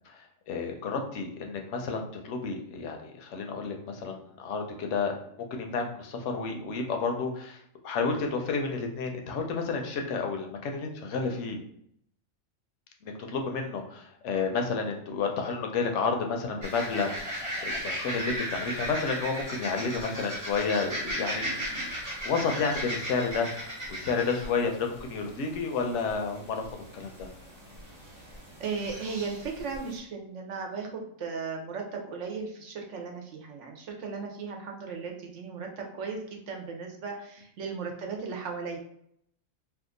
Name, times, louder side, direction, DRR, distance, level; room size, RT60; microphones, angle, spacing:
voice 1, 0.1-5.1 5.4-11.6 13.0-21.9 22.2-26.6 26.9-27.3, left 4 dB, 70° left, 3 dB, 0.9 m, -31 dB
sound 1, 16.6-30.0, equal, 15° right, 0.8 m, -37 dB
voice 2, 28.6-38.8, right 5 dB, 70° right, 2 dB, 0.9 m, -36 dB
2.8 x 2.3 x 3.7 m, 0.69 s
omnidirectional pair, 1.3 m